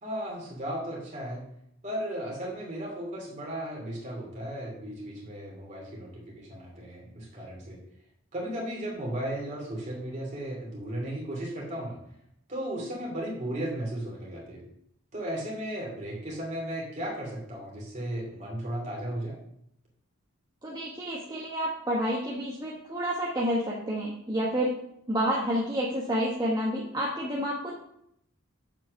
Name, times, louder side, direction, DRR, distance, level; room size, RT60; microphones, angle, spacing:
voice 1, 0.0-1.4 1.8-7.8 8.3-12.0 12.5-14.6 15.1-19.4, right 1 dB, 35° right, -3 dB, 2.7 m, -35 dB
voice 2, 20.6-24.7 25.1-27.7, equal, 20° right, -5 dB, 1.2 m, -29 dB
7.4 x 4.7 x 6.5 m, 0.74 s
head